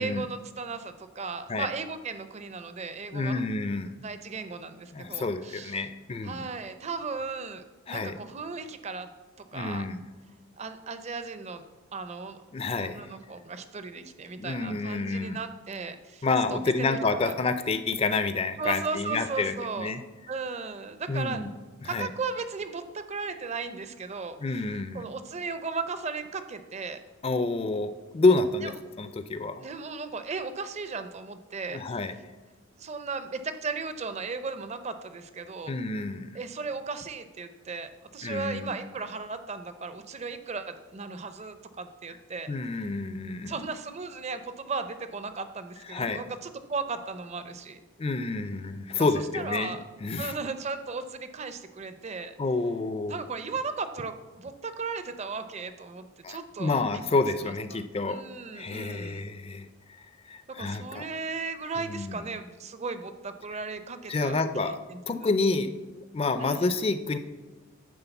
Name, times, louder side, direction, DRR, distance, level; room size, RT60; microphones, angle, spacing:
voice 1, 0.0-3.4 4.0-5.8 6.2-9.1 9.5-9.9 10.6-11.6 11.9-12.4 12.8-17.3 18.6-19.9 20.3-21.5 21.8-24.6 24.9-27.0 28.6-28.7 29.6-31.8 32.8-35.8 36.3-42.5 43.4-47.8 49.0-49.1 49.3-49.8 50.2-52.3 53.1-57.0 57.4-57.8 58.0-59.2 60.5-65.3 66.4-66.7, right 4 dB, 30° right, 10 dB, 0.5 m, -36 dB
voice 2, 3.1-4.0 4.9-6.5 7.9-8.2 9.5-10.0 12.5-13.1 14.0-14.1 14.4-15.4 16.2-20.0 21.1-21.5 21.8-22.1 24.4-25.0 27.2-29.6 31.7-32.1 35.7-36.4 38.2-38.7 42.5-43.6 45.9-46.2 48.0-50.3 52.4-53.2 56.2-58.2 58.5-59.7 60.3-61.1 61.8-62.2 64.1-64.8 65.1-67.2, left 3 dB, 25° left, 11 dB, 0.4 m, -29 dB
9.9 x 3.7 x 7.0 m, 1.2 s
head